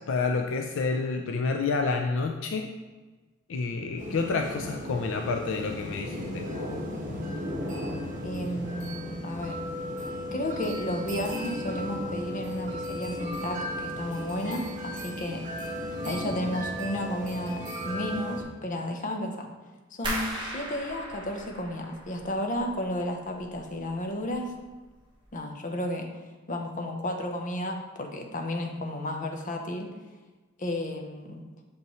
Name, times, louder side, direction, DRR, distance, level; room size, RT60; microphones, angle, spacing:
voice 1, 0.1-2.7 3.5-6.5, left 4 dB, 65° left, 4 dB, 0.4 m, -29 dB
sound 1, 4.0-18.4, equal, 40° right, 1.2 m, -35 dB
voice 2, 8.2-9.6 10.3-15.4 16.0-19.5 19.9-24.5 25.3-26.1 26.5-30.0 30.6-31.4, left 1 dB, 40° left, 3 dB, 0.7 m, -33 dB
sound 2, 20.0-22.9 23.2-23.9 24.3-24.7 25.1-25.2, right 1 dB, 25° right, 1.3 m, -37 dB
6.8 x 5.4 x 3.0 m, 1.2 s
head